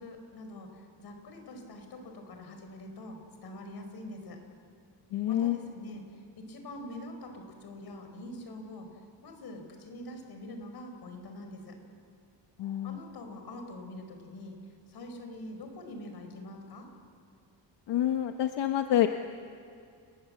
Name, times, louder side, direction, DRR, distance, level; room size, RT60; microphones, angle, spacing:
voice 1, 0.0-4.4 5.3-8.9 9.2-11.8 12.8-14.6 14.9-16.9, left 1 dB, 65° left, 5 dB, 4.7 m, -44 dB
voice 2, 5.1-5.6 12.6-13.0 17.9-19.1, left 12 dB, 90° left, 7 dB, 1.0 m, -27 dB
30.0 x 19.5 x 7.7 m, 2.3 s
cardioid pair, 125°, 42 cm